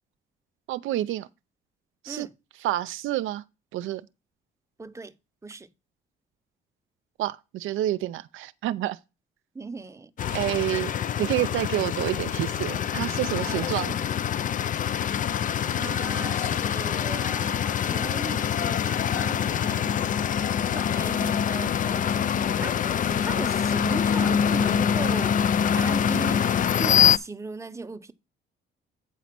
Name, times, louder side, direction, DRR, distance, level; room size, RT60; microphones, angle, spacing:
voice 1, 0.7-1.3 2.0-2.3 2.6-3.4 3.7-4.0 7.2-9.0 10.3-10.9 11.2-13.9, right 14 dB, 85° right, 0.5 m, -28 dB
voice 2, 4.8-5.1 5.4-5.7 9.5-10.1 13.5-13.9 15.6-19.9 20.4-22.9 23.2-25.3 25.8-26.4 26.8-28.1, right 3 dB, 15° right, 0.8 m, -38 dB
sound 1, 10.2-27.2, left 8 dB, 40° left, 0.4 m, -25 dB
8.5 x 4.1 x 5.9 m
cardioid pair, 90°, 20 cm